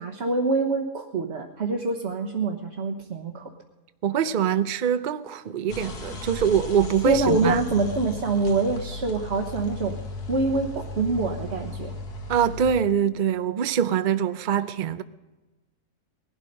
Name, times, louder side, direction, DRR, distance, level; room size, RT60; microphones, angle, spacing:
voice 1, 0.0-3.5 7.0-10.0 10.3-11.9, right 3 dB, 50° right, 1.3 m, -25 dB
voice 2, 4.0-7.6 12.3-15.0, right 8 dB, 65° right, 0.5 m, -24 dB
sound 1, 5.7-12.8, left 2 dB, 80° left, 2.2 m, -36 dB
19.0 x 12.0 x 5.3 m
omnidirectional pair, 1.6 m